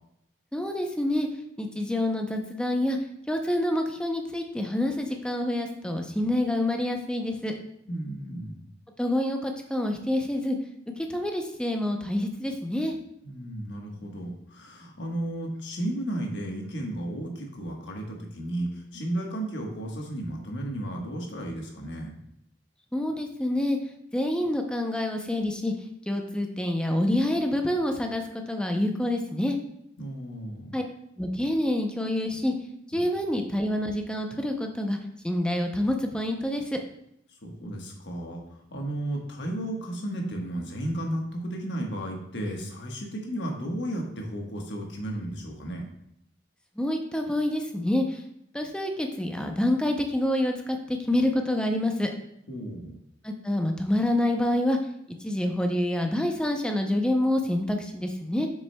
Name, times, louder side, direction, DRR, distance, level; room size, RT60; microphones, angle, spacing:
voice 1, 0.5-1.3 1.6-3.0 3.3-7.5 9.0-10.6 11.0-12.9 22.9-23.8 24.1-25.7 26.1-29.6 30.7-30.8 31.2-32.5 32.9-35.0 35.2-36.8 46.8-48.2 48.5-52.1 53.2-54.8 55.2-58.5, left 1 dB, 5° left, 3 dB, 0.5 m, -27 dB
voice 2, 7.9-8.6 13.2-22.2 30.0-30.7 32.9-33.0 37.4-45.9 52.5-53.0, right 1 dB, 65° left, 0 dB, 1.3 m, -34 dB
7.4 x 6.2 x 2.2 m, 0.76 s
head